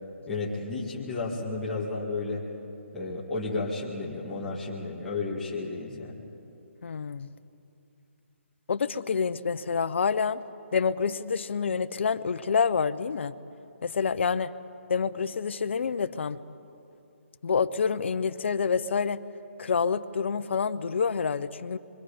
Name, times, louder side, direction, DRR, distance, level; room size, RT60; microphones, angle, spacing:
voice 1, 0.3-2.4 2.9-6.2, left 3 dB, 5° left, -8 dB, 2.1 m, -32 dB
voice 2, 6.8-7.3 8.7-10.4 10.7-13.3 13.8-14.5 14.9-16.4 17.4-19.2 19.6-21.8, left 6 dB, 60° left, 12 dB, 0.7 m, -27 dB
25.5 x 23.5 x 5.2 m, 2.7 s
hypercardioid pair, 165°, 7 cm